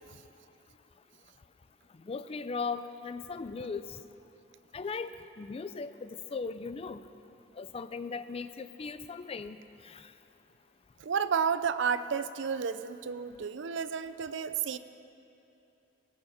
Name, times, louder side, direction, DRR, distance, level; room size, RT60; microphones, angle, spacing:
voice 1, 2.0-4.0 4.7-7.0 7.6-9.6 9.8-10.1, left 4 dB, 30° left, 12 dB, 0.4 m, -38 dB
voice 2, 11.0-14.8, right 6 dB, 65° right, 13 dB, 0.5 m, -31 dB
19.5 x 8.0 x 5.9 m, 2.8 s
head